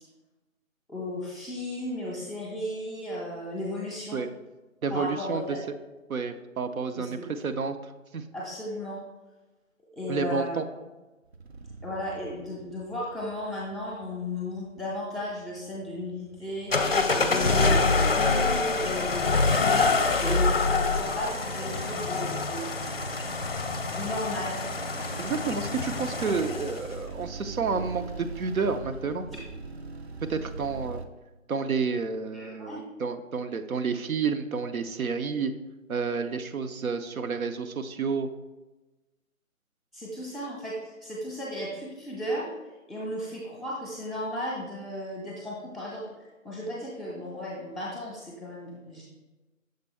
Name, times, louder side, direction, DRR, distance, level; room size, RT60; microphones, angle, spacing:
voice 1, 0.9-4.2 4.9-5.7 6.9-7.3 8.3-9.0 9.9-10.6 11.8-22.7 23.9-24.6 32.3-32.9 39.9-49.0, equal, ahead, -5 dB, 0.5 m, -35 dB
voice 2, 4.8-5.6 6.1-7.8 8.1-8.2 10.1-10.6 25.2-29.3 30.3-31.0 31.5-35.5 35.9-38.3, right 5 dB, 85° right, 8 dB, 0.7 m, -30 dB
sound 1, 11.3-31.1, right 3 dB, 50° right, 0.5 m, -43 dB
sound 2, 16.7-26.9, left 3 dB, 45° left, 0.5 m, -26 dB
6.5 x 4.4 x 3.5 m, 1.1 s
figure-of-eight pair, 170°, 41 cm